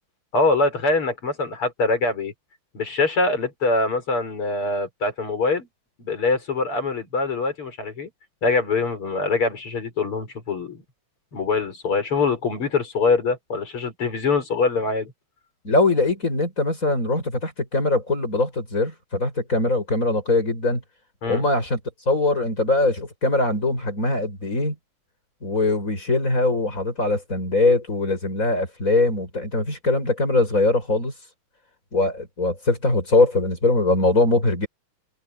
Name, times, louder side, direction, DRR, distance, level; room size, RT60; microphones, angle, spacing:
voice 1, 0.3-2.3 2.7-5.7 6.0-8.1 8.4-10.8 11.3-15.1 21.2-21.4, left 3 dB, 85° left, 6.1 m, -23 dB
voice 2, 15.6-20.8 21.3-21.8 22.1-24.8 25.4-31.1 31.9-34.7, left 2 dB, 35° left, 7.0 m, -22 dB
omnidirectional pair, 2.4 m